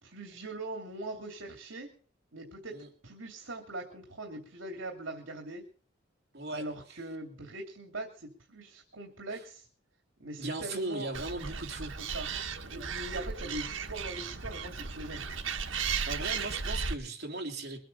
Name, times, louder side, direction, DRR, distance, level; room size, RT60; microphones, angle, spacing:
voice 1, 0.0-1.9 2.3-5.6 6.5-9.7 10.2-11.1 12.0-12.3 12.7-15.3, right 1 dB, 70° right, 2 dB, 2.8 m, -41 dB
voice 2, 6.3-6.7 10.4-12.0 16.1-17.8, right 2 dB, 55° right, 4 dB, 2.9 m, -37 dB
Animal, 11.1-16.9, right 5 dB, 90° right, 1.4 m, -35 dB
22.5 x 9.1 x 5.4 m, 0.43 s
head